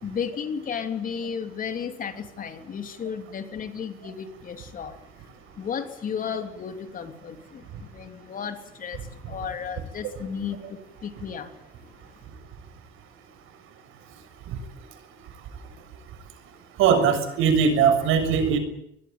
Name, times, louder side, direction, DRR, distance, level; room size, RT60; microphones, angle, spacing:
voice 1, 0.0-5.3 5.6-11.6, left 7 dB, 40° left, 8 dB, 3.3 m, -34 dB
voice 2, 16.8-18.6, right 6 dB, 75° right, 9 dB, 6.7 m, -20 dB
24.0 x 20.5 x 9.0 m, 0.79 s
cardioid pair, 145°, 21 cm